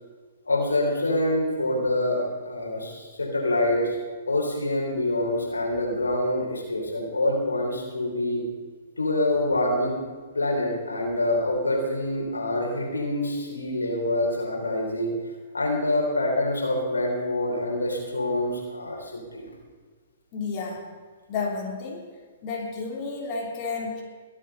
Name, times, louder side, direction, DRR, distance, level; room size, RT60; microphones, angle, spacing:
voice 1, 0.5-4.0 4.3-8.4 9.0-10.0 10.3-15.2 15.5-19.5, left 1 dB, 90° left, -1 dB, 3.9 m, -26 dB
voice 2, 20.3-20.9 21.3-22.0 22.4-24.0, left 4 dB, 40° left, -2 dB, 3.3 m, -31 dB
22.5 x 7.6 x 5.5 m, 1.5 s
hypercardioid pair, 120°, 0 cm